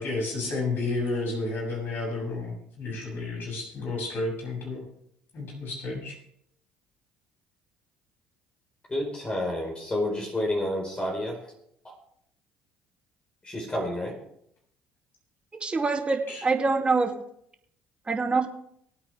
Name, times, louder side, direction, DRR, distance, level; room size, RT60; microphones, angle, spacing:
voice 1, 0.0-4.8 5.3-6.1 16.3-16.4, left 3 dB, 55° left, -1 dB, 7.1 m, -31 dB
voice 2, 8.9-11.5 11.8-11.9 13.4-14.2, left 1 dB, 20° left, 0 dB, 4.6 m, -30 dB
voice 3, 15.6-17.1 18.1-18.5, right 4 dB, 25° right, 3 dB, 2.5 m, -25 dB
23.5 x 8.7 x 3.4 m, 0.71 s
hypercardioid pair, 60°, 4 cm